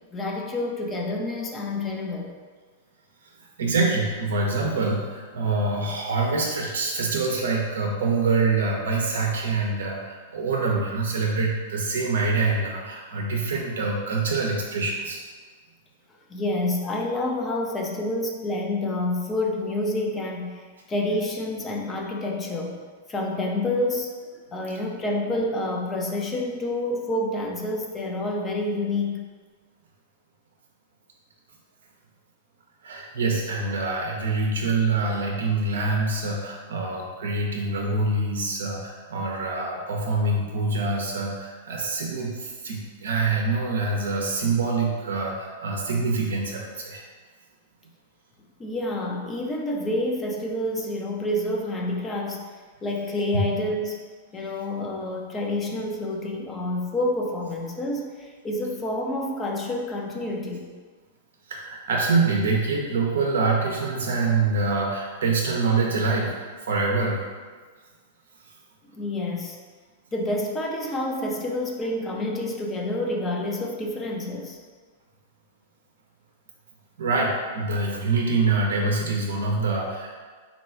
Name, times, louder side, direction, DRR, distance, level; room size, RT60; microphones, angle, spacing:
voice 1, 0.1-2.3 10.4-10.5 16.3-22.8 23.1-29.3 48.6-52.5 52.8-54.0 54.3-60.7 68.9-69.6 70.1-74.6, left 1 dB, 20° left, 0 dB, 0.6 m, -28 dB
voice 2, 3.4-15.2 32.8-47.0 53.3-53.4 61.5-67.3 77.0-80.2, right 3 dB, 70° right, 0 dB, 0.6 m, -25 dB
4.1 x 2.3 x 4.3 m, 1.5 s
hypercardioid pair, 105°, 0 cm